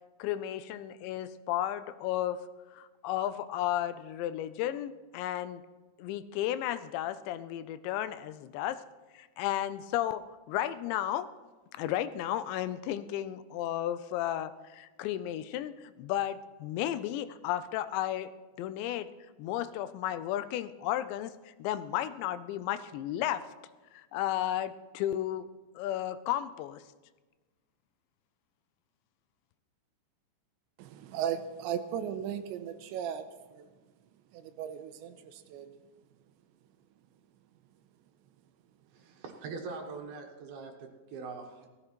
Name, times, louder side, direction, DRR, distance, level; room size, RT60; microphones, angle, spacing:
voice 1, 0.2-2.4 2.7-5.6 6.0-8.8 9.1-11.3 11.7-18.3 18.6-19.1 19.4-23.4 23.9-25.5 25.8-26.8, left 12 dB, 85° left, 2.8 m, -33 dB
voice 2, 30.8-33.7 34.3-35.7, right 9 dB, 90° right, 3.1 m, -37 dB
voice 3, 38.9-41.7, right 4 dB, 65° right, 2.9 m, -42 dB
18.0 x 13.5 x 4.4 m
omnidirectional pair, 5.2 m